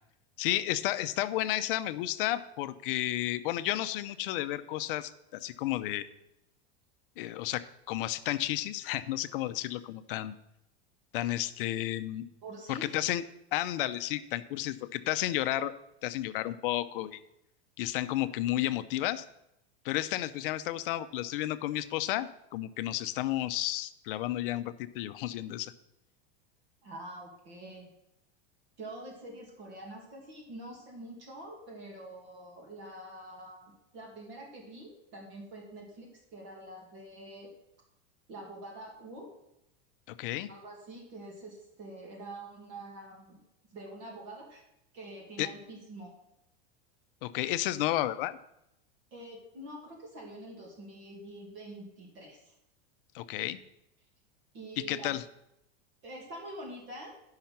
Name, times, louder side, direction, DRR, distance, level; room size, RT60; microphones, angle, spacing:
voice 1, 0.4-6.1 7.2-10.3 11.1-12.3 12.7-13.2 13.5-15.7 16.0-17.2 17.8-19.3 19.8-25.7 40.1-40.5 45.4-45.5 47.2-48.4 53.1-53.6 54.8-55.2, left 14 dB, 60° left, 12 dB, 0.7 m, -32 dB
voice 2, 12.4-12.9 26.8-27.9 28.8-37.5 38.3-39.3 40.5-43.4 43.7-44.6 44.9-46.1 49.1-52.5 54.5-55.2 56.0-57.2, right 1 dB, 35° right, 0 dB, 2.2 m, -46 dB
10.5 x 5.7 x 5.8 m, 0.83 s
supercardioid pair, 165°, 32 cm